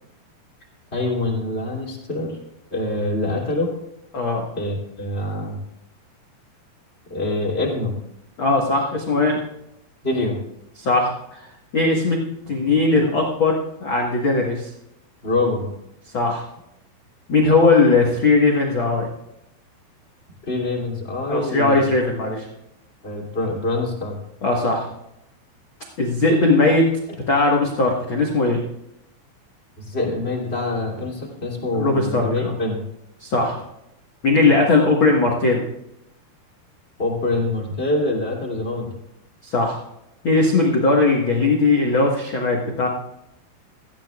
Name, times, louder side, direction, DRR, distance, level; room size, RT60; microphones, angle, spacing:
voice 1, 0.9-2.4 2.7-3.7 4.6-5.6 7.1-7.9 10.0-10.4 15.2-15.7 20.5-21.9 23.0-24.1 29.8-32.8 37.0-38.9, left 2 dB, 20° left, -2 dB, 2.3 m, -25 dB
voice 2, 8.4-9.4 10.8-11.5 11.7-12.2 12.5-14.7 16.1-16.4 17.3-19.1 21.3-22.5 24.4-24.8 26.0-26.9 27.3-28.6 31.7-32.5 33.2-33.6 34.2-35.6 39.4-39.8 40.2-42.9, left 3 dB, 85° left, -1 dB, 1.1 m, -19 dB
17.5 x 14.5 x 2.4 m, 0.83 s
omnidirectional pair, 4.9 m